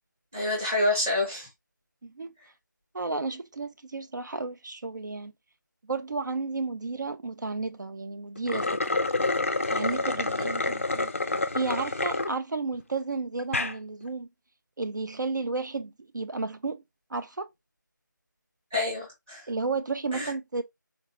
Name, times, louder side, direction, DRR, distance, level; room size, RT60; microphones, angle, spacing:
voice 1, 0.3-1.5 10.4-10.5 18.7-19.4 20.1-20.3, left 2 dB, 10° right, 0.8 m, -28 dB
voice 2, 2.0-2.3 2.9-5.3 5.9-8.7 9.7-11.1 11.5-14.3 14.8-16.8 17.1-17.5 19.5-20.6, right 3 dB, 65° right, 0.4 m, -32 dB
sound 1, 8.4-12.3 12.8-12.9 13.4-13.7, left 2 dB, 40° left, 0.3 m, -28 dB
4.0 x 2.2 x 2.7 m
figure-of-eight pair, 175°, 11 cm